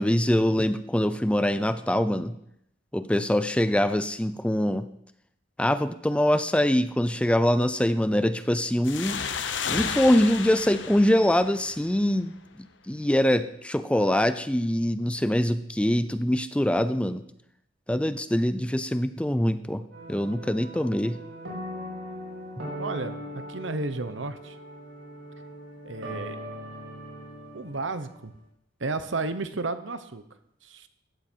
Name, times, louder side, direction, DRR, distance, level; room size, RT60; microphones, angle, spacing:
voice 1, 0.0-2.3 2.9-4.9 5.6-9.2 9.7-12.3 12.6-17.2 17.9-21.2, left 1 dB, 5° left, 12 dB, 0.5 m, -24 dB
sound 1, 8.8-12.2, left 6 dB, 70° left, 1.1 m, -33 dB
sound 2, 19.9-28.3, equal, 85° right, 5.4 m, -40 dB
voice 2, 22.8-23.2 23.5-24.6 25.8-26.4 27.5-28.3 28.8-30.2 30.6-30.9, right 3 dB, 70° right, 11 dB, 1.0 m, -32 dB
16.0 x 12.5 x 4.6 m, 0.76 s
head